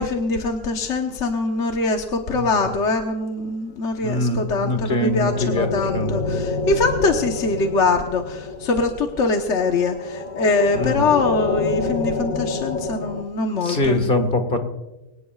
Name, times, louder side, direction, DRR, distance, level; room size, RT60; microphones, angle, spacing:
voice 1, 0.0-14.2, left 3 dB, 50° left, 3 dB, 1.3 m, -23 dB
voice 2, 4.0-6.5 10.7-11.1 13.6-14.6, left 1 dB, 35° left, 6 dB, 1.7 m, -23 dB
sound 1, 4.4-13.2, left 3 dB, 70° left, 1.8 m, -28 dB
25.0 x 18.0 x 2.4 m, 1.0 s
omnidirectional pair, 1.7 m